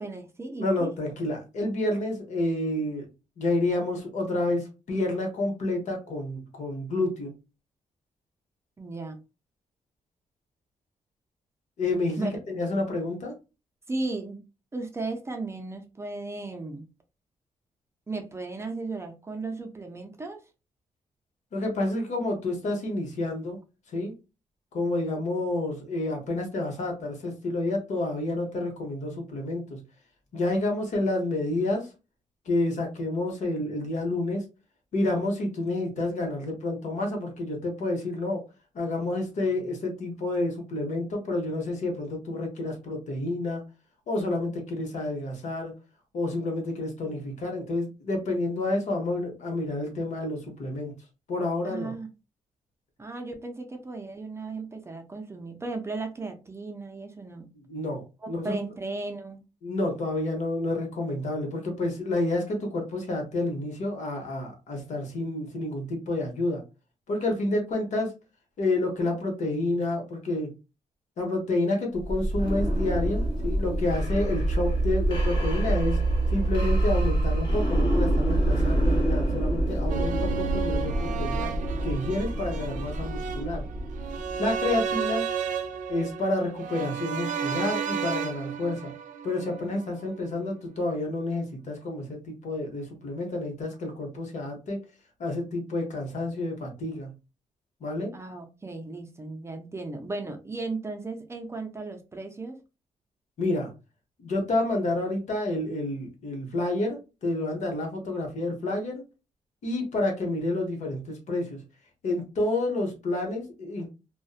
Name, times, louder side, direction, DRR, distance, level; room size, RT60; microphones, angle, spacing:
voice 1, 0.0-0.9 8.8-9.2 12.2-12.3 13.9-14.4 14.7-16.9 18.1-20.4 51.6-52.1 53.0-57.5 58.2-59.4 98.1-102.6, right 3 dB, 20° right, 4 dB, 0.4 m, -35 dB
voice 2, 0.6-3.1 3.4-7.3 11.8-13.3 21.5-23.6 23.9-24.1 24.7-29.8 30.3-31.9 32.5-34.5 34.9-38.4 38.7-43.6 44.1-45.7 46.1-51.0 51.3-51.9 57.5-58.6 59.6-66.6 67.1-68.1 68.6-70.5 71.2-76.0 76.3-81.5 81.8-83.6 84.4-85.3 85.9-88.9 89.2-94.8 95.2-97.1 97.8-98.1 103.4-103.7 104.2-109.0 109.6-111.6 112.0-113.9, left 2 dB, 65° left, 2 dB, 0.9 m, -29 dB
sound 1, 72.0-84.8, right 1 dB, 40° left, 1.3 m, -26 dB
sound 2, 79.9-90.0 90.3-90.4, right 6 dB, 80° right, 0.4 m, -32 dB
2.5 x 2.1 x 2.4 m, 0.29 s
cardioid pair, 120°, 13 cm